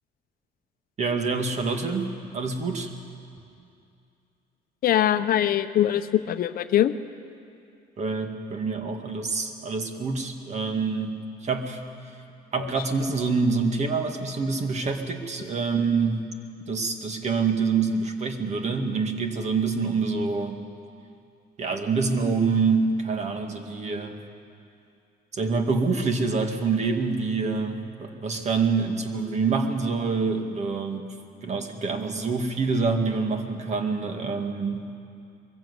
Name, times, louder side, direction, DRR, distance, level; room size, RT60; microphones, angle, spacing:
voice 1, 1.0-2.9 8.0-11.1 11.4-11.8 12.5-16.3 16.7-20.7 21.6-24.2 25.3-31.1 31.4-34.9, right 4 dB, 40° right, 5 dB, 2.0 m, -26 dB
voice 2, 4.8-6.9 12.6-12.7, left 11 dB, 60° left, 11 dB, 0.8 m, -22 dB
22.5 x 15.5 x 8.2 m, 2.5 s
cardioid pair, 110°, 17 cm